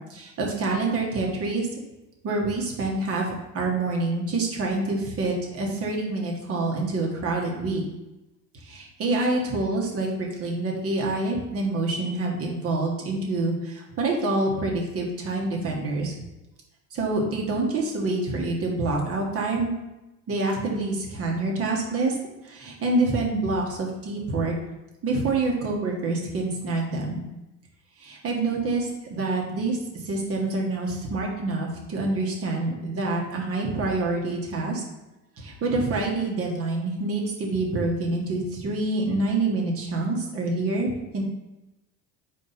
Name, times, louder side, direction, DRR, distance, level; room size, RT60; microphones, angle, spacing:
voice 1, 0.0-1.7 2.2-3.3 3.5-7.8 8.6-16.1 16.9-19.7 20.3-22.2 22.4-24.5 25.0-27.2 28.0-29.8 30.0-34.8 35.4-41.2, right 2 dB, 40° right, -1 dB, 1.5 m, -26 dB
4.5 x 4.2 x 5.7 m, 0.99 s
cardioid pair, 130°, 34 cm